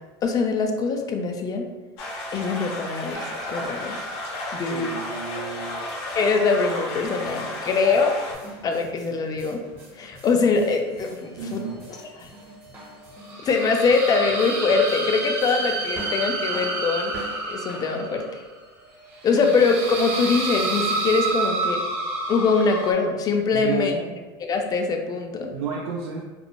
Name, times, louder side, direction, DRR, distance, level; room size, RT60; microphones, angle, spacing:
voice 1, 0.2-1.7 2.3-4.0 4.5-4.9 6.2-8.1 8.6-9.6 9.9-11.6 11.9-12.3 13.4-17.1 17.5-18.4 19.2-21.8 22.3-23.9 24.4-25.5, left 4 dB, 30° left, 4 dB, 0.3 m, -23 dB
sound 1, 2.0-8.3, left 1 dB, 75° left, 0.6 m, -33 dB
sound 2, 3.1-6.6 7.0-7.1 10.5-11.1 11.5-22.9, right 2 dB, 45° right, 0.9 m, -30 dB
voice 2, 4.7-5.8 11.4-11.8 23.5-24.2 25.5-26.2, right 5 dB, 70° right, -4 dB, 0.4 m, -31 dB
sound 3, 7.0-18.0, right 1 dB, 15° right, 0.7 m, -45 dB
2.9 x 2.0 x 2.2 m, 1.2 s
supercardioid pair, 110°, 14 cm